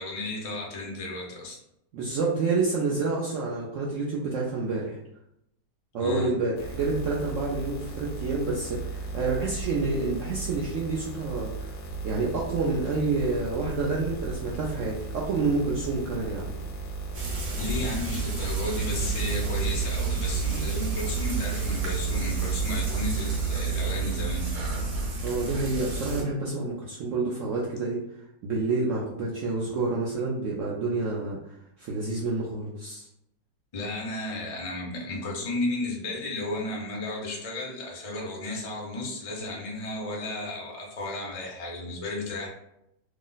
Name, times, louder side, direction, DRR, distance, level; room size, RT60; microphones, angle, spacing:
voice 1, 0.0-1.6 6.0-6.3 17.6-24.7 33.7-42.5, left 2 dB, 50° left, -2 dB, 0.4 m, -33 dB
voice 2, 1.9-5.0 5.9-11.7 12.0-16.6 20.5-20.6 25.2-28.0 28.4-33.1, right 3 dB, 80° right, -3 dB, 0.6 m, -28 dB
sound 1, 6.6-23.6, right 4 dB, 65° left, 1.0 m, -36 dB
Frying (food), 17.1-26.2, right 4 dB, 55° right, 1.1 m, -29 dB
3.0 x 2.0 x 3.8 m, 0.81 s
omnidirectional pair, 1.8 m